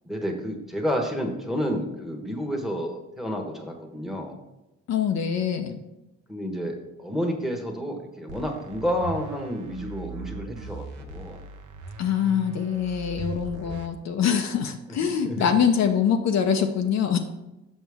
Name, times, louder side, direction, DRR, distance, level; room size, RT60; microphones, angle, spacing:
voice 1, 0.0-4.4 6.3-11.4 13.5-13.8 14.9-15.5, equal, ahead, 2 dB, 1.2 m, -30 dB
voice 2, 4.9-5.8 12.0-17.2, left 7 dB, 60° left, 5 dB, 0.6 m, -24 dB
sound 1, 8.3-13.9, right 4 dB, 80° right, 0.8 m, -39 dB
6.4 x 5.8 x 3.5 m, 0.96 s
cardioid pair, 90°, 30 cm